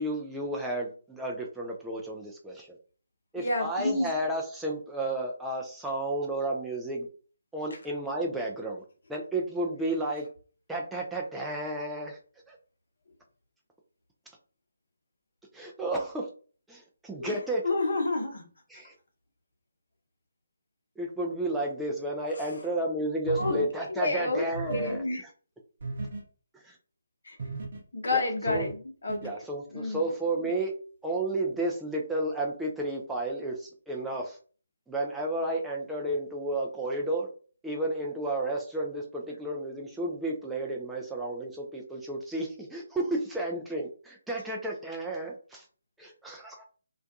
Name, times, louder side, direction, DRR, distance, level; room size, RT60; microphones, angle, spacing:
voice 1, 0.0-2.8 3.3-7.1 7.5-8.8 9.1-10.3 10.7-12.2 12.5-12.6 15.5-16.3 16.7-17.7 18.7-18.9 21.0-25.0 26.5-26.8 28.1-28.7 29.2-30.7 31.0-34.4 34.9-37.3 37.6-45.7 46.0-46.6, right 1 dB, 5° right, -2 dB, 0.4 m, -32 dB
voice 2, 3.3-4.1 17.2-17.4 17.6-18.4 22.4-22.5 23.3-23.6 23.9-24.4 24.7-25.2 27.2-27.4 27.9-29.3 29.7-30.0 30.4-30.5, left 2 dB, 60° left, 3 dB, 0.8 m, -29 dB
sound 1, 23.2-23.7 24.5-25.0 25.8-26.2 27.4-27.8 28.5-28.7 29.1-29.3, right 3 dB, 50° right, 0.8 m, -35 dB
2.4 x 2.2 x 2.5 m, 0.39 s
figure-of-eight pair, 145°, 0 cm